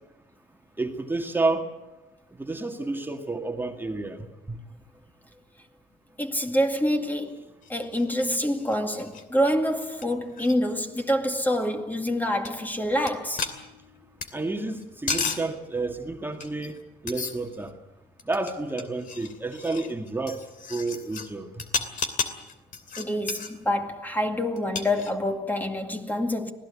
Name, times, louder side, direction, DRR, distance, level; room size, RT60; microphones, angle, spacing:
voice 1, 0.8-1.7 2.4-4.6 14.3-16.7 17.0-17.7 18.3-20.4 20.7-21.5, right 3 dB, 10° right, 1.9 m, -30 dB
voice 2, 6.2-7.4 7.7-13.5 23.0-26.5, equal, 10° left, 2.2 m, -26 dB
sound 1, 7.6-9.2 9.7-9.8 10.0-10.1 10.3-10.6 12.5-12.6 13.1-13.2 13.4-14.3 14.8-15.5 16.4-16.8 17.1-17.7 18.2-21.3 21.6-23.5 24.6-25.4, left 5 dB, 55° left, 2.7 m, -34 dB
25.5 x 17.5 x 8.5 m
cardioid pair, 110°, 17 cm